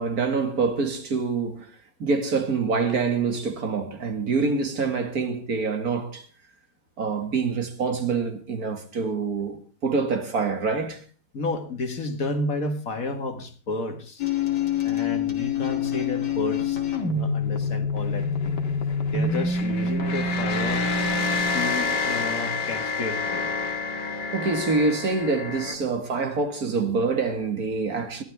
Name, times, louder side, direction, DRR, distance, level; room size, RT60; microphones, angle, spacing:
voice 1, 0.0-1.7 2.0-6.3 7.0-11.0 24.1-28.2, right 4 dB, 60° right, 2.3 m, -26 dB
voice 2, 11.3-14.2 14.8-18.6 19.1-20.9 21.5-23.5, left 2 dB, 55° left, 2.1 m, -31 dB
sound 1, 14.2-25.8, left 4 dB, 85° left, 2.6 m, -26 dB
20.5 x 14.0 x 3.5 m
omnidirectional pair, 1.8 m